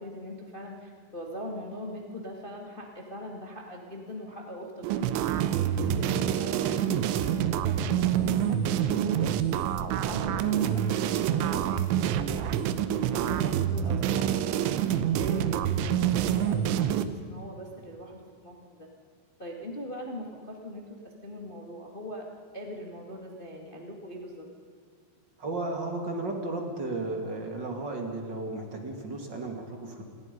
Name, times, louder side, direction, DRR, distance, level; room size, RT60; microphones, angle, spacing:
voice 1, 0.0-5.2 5.5-9.3 9.9-12.5 12.9-18.9 19.4-22.3 22.5-24.4, left 1 dB, 65° left, 0 dB, 0.5 m, -41 dB
sound 1, 4.8-17.1, right 10 dB, 80° right, 3.3 m, -27 dB
voice 2, 25.4-30.0, right 2 dB, 30° right, 2 dB, 2.2 m, -34 dB
27.5 x 21.0 x 5.4 m, 2.2 s
omnidirectional pair, 5.5 m